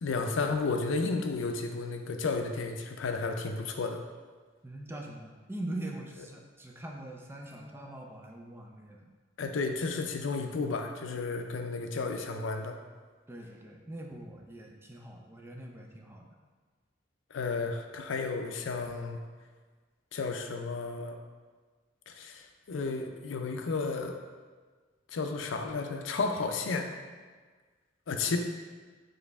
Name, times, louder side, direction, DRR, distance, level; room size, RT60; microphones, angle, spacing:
voice 1, 0.0-4.0 9.4-12.8 17.3-19.2 20.1-21.2 22.1-24.2 25.1-26.9 28.1-28.4, left 4 dB, 85° left, 5 dB, 0.4 m, -32 dB
voice 2, 4.6-9.1 13.3-16.3, right 1 dB, 10° right, 0 dB, 0.4 m, -42 dB
4.2 x 3.2 x 3.4 m, 1.5 s
head